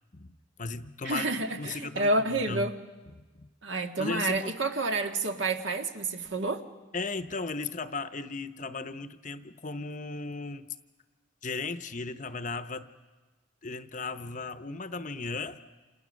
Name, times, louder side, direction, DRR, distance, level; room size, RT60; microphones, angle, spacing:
voice 1, 0.1-1.3 1.6-2.7 3.1-3.5 4.0-4.5 6.9-10.7 11.4-12.9 13.6-15.6, left 4 dB, 40° left, 0.8 m, -36 dB
voice 2, 1.0-2.7 3.6-6.6, right 2 dB, 65° right, 1.7 m, -29 dB
28.5 x 28.0 x 6.4 m
head